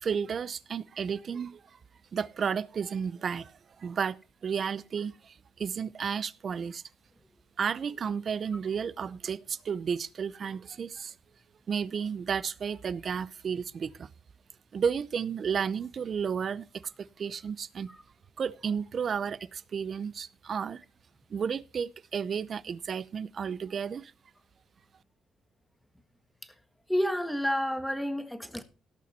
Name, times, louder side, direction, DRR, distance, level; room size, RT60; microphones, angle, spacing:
voice 1, 0.0-1.8 2.1-6.8 7.6-11.1 11.7-14.1 14.7-16.7 17.0-17.9 18.4-20.8 21.3-24.1, right 6 dB, 50° right, 0.6 m, -32 dB
voice 2, 26.9-28.6, equal, ahead, 1.6 m, -30 dB
17.5 x 6.6 x 4.3 m
cardioid pair, 90°, 0 cm